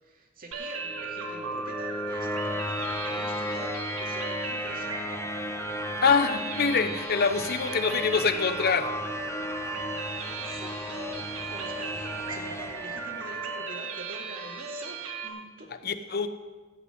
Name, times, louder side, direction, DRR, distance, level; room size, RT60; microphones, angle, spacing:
voice 1, 0.0-5.2 10.4-10.8 11.5-15.7, right 2 dB, 45° right, 1 dB, 2.3 m, -45 dB
sound 1, 0.5-15.3, right 4 dB, 75° right, 1.7 m, -36 dB
sound 2, 0.7-13.8, left 2 dB, 15° left, 0.6 m, -36 dB
voice 2, 6.0-9.0 15.8-16.3, left 5 dB, 50° left, 9 dB, 0.9 m, -25 dB
17.0 x 5.9 x 8.0 m, 1.4 s
head